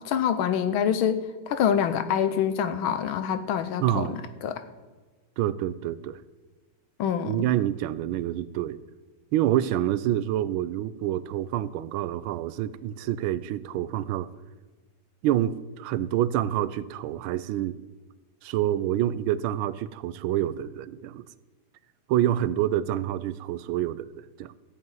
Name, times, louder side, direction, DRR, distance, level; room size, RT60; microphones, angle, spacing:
voice 1, 0.0-4.6 7.0-7.4, left 8 dB, 85° left, 11 dB, 1.6 m, -26 dB
voice 2, 3.8-4.2 5.4-6.2 7.2-8.8 9.3-14.3 15.2-17.8 18.4-21.2 22.1-24.6, right 12 dB, 90° right, 17 dB, 1.4 m, -27 dB
13.5 x 5.8 x 9.0 m, 1.3 s
omnidirectional pair, 2.2 m